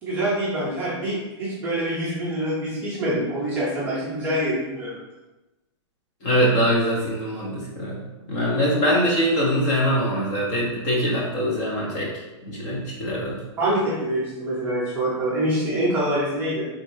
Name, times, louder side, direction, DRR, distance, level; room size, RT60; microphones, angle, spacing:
voice 1, 0.0-5.0 13.6-16.6, right 1 dB, 10° right, -7 dB, 0.6 m, -25 dB
voice 2, 6.2-8.0 8.3-12.1 12.4-13.4, equal, 20° left, -4 dB, 0.7 m, -23 dB
4.6 x 3.6 x 2.6 m, 1.0 s
supercardioid pair, 180°, 15 cm